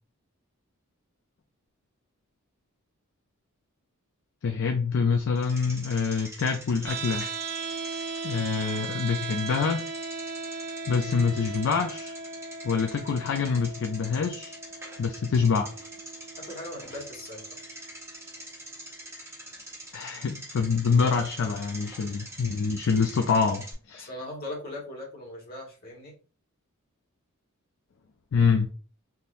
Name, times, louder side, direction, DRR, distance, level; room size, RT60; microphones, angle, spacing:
voice 1, 4.4-7.3 8.2-9.8 10.9-12.1 12.6-14.6 15.0-15.7 19.9-24.1 28.3-28.7, left 5 dB, 60° left, 0.4 m, -26 dB
Bicycle, 5.4-23.7, right 1 dB, 15° right, 1.2 m, -45 dB
sound 1, 6.8-18.9, right 4 dB, 50° right, 0.7 m, -38 dB
voice 2, 16.4-17.5 24.0-26.1, left 1 dB, 45° left, 1.5 m, -39 dB
3.7 x 2.7 x 2.5 m
head